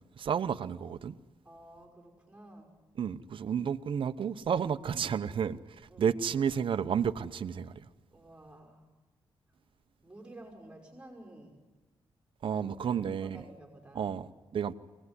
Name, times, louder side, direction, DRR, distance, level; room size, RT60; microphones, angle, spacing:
voice 1, 0.2-1.2 3.0-7.8 12.4-13.4 13.9-14.7, right 7 dB, 65° right, 0.8 m, -31 dB
voice 2, 1.4-2.7 5.9-6.2 8.1-8.9 10.0-11.6 12.5-14.1, right 1 dB, 10° right, 5.6 m, -52 dB
23.5 x 18.5 x 9.8 m
cardioid pair, 100°, 10 cm